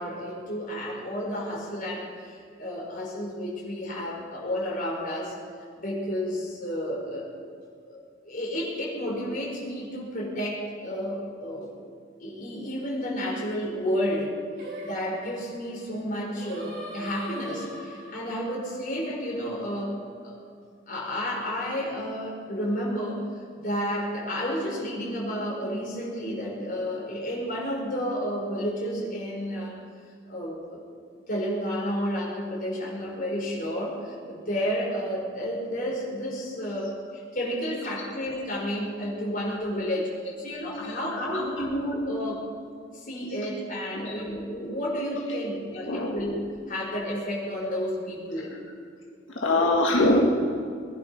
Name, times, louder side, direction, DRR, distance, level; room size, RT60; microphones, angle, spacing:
voice 1, 0.0-5.3 5.8-7.3 7.8-8.0 8.2-11.7 12.2-14.4 14.7-20.4 20.9-23.2 23.6-29.7 30.3-30.8 31.3-40.1 40.4-42.5 42.9-46.4 46.7-48.5 49.4-49.7, equal, 45° left, -3 dB, 4.8 m, -31 dB
Singing, 14.6-19.9, right 1 dB, 65° right, 5.0 m, -42 dB
voice 2, 45.9-46.2 49.4-50.3, left 2 dB, 85° left, -1 dB, 1.8 m, -23 dB
21.0 x 11.0 x 5.7 m, 2.1 s
head